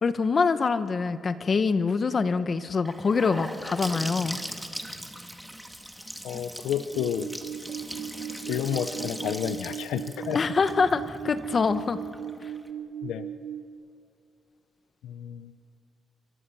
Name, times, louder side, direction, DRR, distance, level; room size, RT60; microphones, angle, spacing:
voice 1, 0.0-4.4 10.3-12.0, left 5 dB, 40° left, 11 dB, 1.2 m, -25 dB
Gurgling / Sink (filling or washing) / Bathtub (filling or washing), 2.8-12.7, equal, ahead, 2.0 m, -39 dB
voice 2, 6.2-7.3 8.5-10.4 13.0-13.3 15.0-15.5, left 10 dB, 80° left, 11 dB, 0.8 m, -30 dB
sound 1, 6.9-13.6, right 9 dB, 85° right, 2.8 m, -38 dB
29.0 x 23.5 x 7.1 m, 2.4 s
cardioid pair, 90°, 0 cm